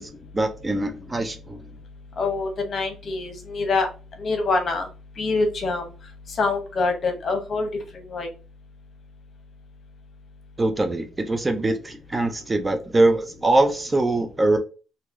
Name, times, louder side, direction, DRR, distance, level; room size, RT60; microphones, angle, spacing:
voice 1, 0.0-1.7 10.6-14.6, right 2 dB, 25° right, 0.6 m, -23 dB
voice 2, 2.2-3.9 4.2-4.9 5.2-5.9 6.4-7.7 8.1-8.3, left 3 dB, 50° left, 1.0 m, -25 dB
2.9 x 2.8 x 3.6 m
cardioid pair, 90°, 0 cm